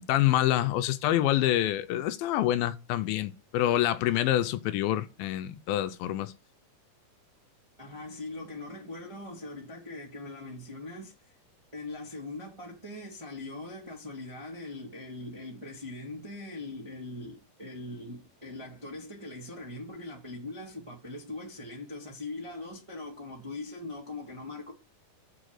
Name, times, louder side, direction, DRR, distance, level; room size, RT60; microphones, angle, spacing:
voice 1, 0.0-6.3, left 13 dB, 85° left, 2.3 m, -27 dB
voice 2, 7.8-11.1 11.7-24.7, left 2 dB, 20° right, 0.9 m, -41 dB
7.1 x 5.0 x 6.5 m
omnidirectional pair, 4.3 m